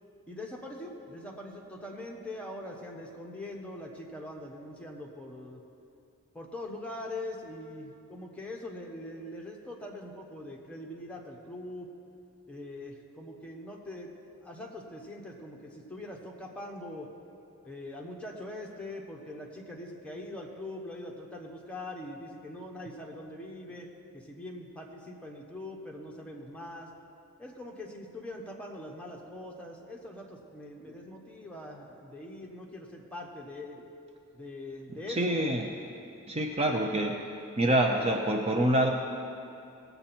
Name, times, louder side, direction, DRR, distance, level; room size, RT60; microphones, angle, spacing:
voice 1, 0.3-5.6 6.3-11.9 12.5-14.1 14.4-17.1 17.6-26.9 27.4-33.8 34.3-35.5, left 1 dB, 5° left, -1 dB, 1.1 m, -42 dB
voice 2, 35.1-35.7 36.3-37.1 37.6-38.9, right 1 dB, 25° right, 2 dB, 0.6 m, -26 dB
18.0 x 8.0 x 4.4 m, 2.6 s
head